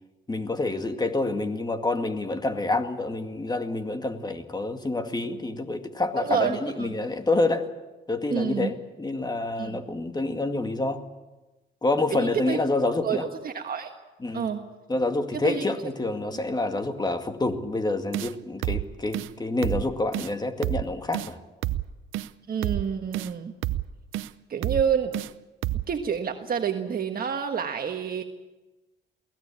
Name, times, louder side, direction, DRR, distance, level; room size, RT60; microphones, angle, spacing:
voice 1, 0.3-7.7 8.1-11.0 11.8-13.2 14.2-14.4 14.9-21.4, left 2 dB, 20° left, 7 dB, 2.1 m, -27 dB
voice 2, 6.2-6.9 8.3-8.7 9.6-9.8 12.1-12.6 13.0-13.2 13.4-13.9 14.3-14.6 15.3-15.8 16.2-16.4 22.5-23.5 24.5-25.2 25.9-28.2, right 7 dB, 45° right, 5 dB, 1.5 m, -28 dB
sound 1, 18.1-18.3 18.6-18.8 19.1-19.3 19.6-19.8 20.1-20.3 20.6-20.8 21.1-21.3 21.6-21.8 22.1-22.3 22.6-22.8 23.1-23.3 23.6-23.8 24.1-24.3 24.6-24.8 25.1-25.3 25.6-25.8, right 15 dB, 85° right, 0.7 m, -28 dB
23.5 x 17.0 x 8.7 m, 1.1 s
cardioid pair, 90°, 20 cm